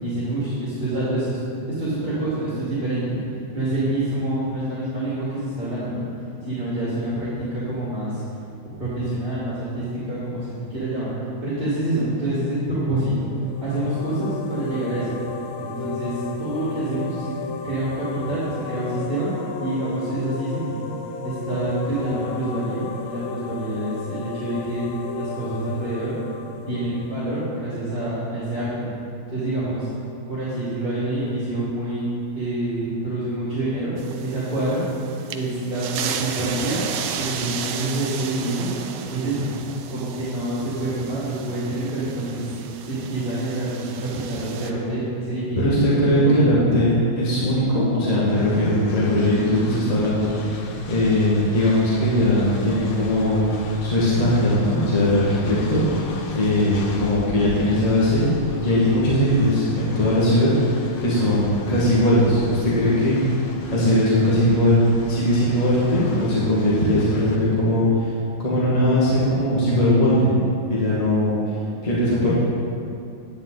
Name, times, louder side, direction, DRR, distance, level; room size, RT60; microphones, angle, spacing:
voice 1, 0.0-1.4 1.8-3.2 3.5-6.0 6.4-8.2 8.8-11.1 11.4-13.3 13.6-15.1 15.6-17.3 17.6-19.3 19.6-20.8 21.2-24.8 25.2-26.1 26.7-28.9 29.3-29.9 30.3-33.9 34.2-34.8 35.3-36.9 37.1-38.7 39.1-39.5 39.9-42.5 42.8-45.7 46.2-46.8, right 1 dB, 25° right, -10 dB, 2.6 m, -27 dB
sound 1, 13.3-28.0, left 6 dB, 85° left, 1.5 m, -34 dB
sound 2, 34.0-44.7, right 7 dB, 90° right, 1.5 m, -34 dB
voice 2, 45.6-50.3 50.9-53.4 53.8-55.8 56.3-60.5 61.0-63.2 63.7-68.1 68.4-70.4 70.7-71.3 71.8-72.3, left 1 dB, 20° left, -8 dB, 1.8 m, -19 dB
Train, 48.3-67.4, left 3 dB, 65° left, 1.5 m, -37 dB
10.0 x 9.0 x 4.0 m, 2.5 s
omnidirectional pair, 2.2 m